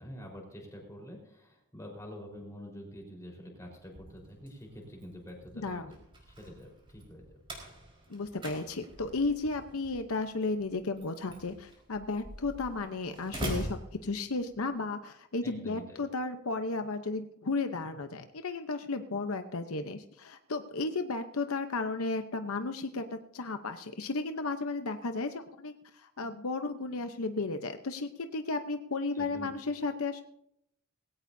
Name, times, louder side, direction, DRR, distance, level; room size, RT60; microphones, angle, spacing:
voice 1, 0.0-6.0 6.3-7.4 15.4-16.1 29.1-29.5, equal, 15° left, 0 dB, 4.3 m, -47 dB
Slam, 3.8-14.7, right 1 dB, 25° right, 4.5 m, -44 dB
voice 2, 8.1-30.2, left 3 dB, 70° left, 7 dB, 0.8 m, -34 dB
20.0 x 17.0 x 2.7 m, 0.77 s
head